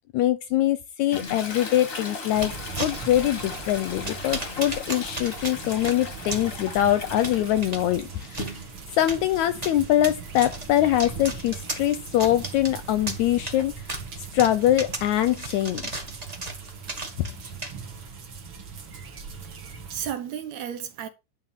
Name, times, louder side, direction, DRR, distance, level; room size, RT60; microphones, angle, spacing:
voice 1, 0.1-2.5 2.8-8.5 9.0-13.7 14.3-16.0 17.2-17.3, left 13 dB, 75° left, 1.7 m, -23 dB
Toilet flush, 1.1-8.9 9.3-13.6, left 3 dB, 45° left, 1.0 m, -39 dB
sound 1, 2.3-18.1, right 2 dB, 30° right, 0.7 m, -38 dB
sound 2, 2.3-20.1, right 5 dB, 45° right, 2.3 m, -40 dB
voice 2, 19.0-19.6 19.9-21.1, right 9 dB, 65° right, 2.0 m, -34 dB
11.0 x 3.8 x 7.3 m
omnidirectional pair, 3.8 m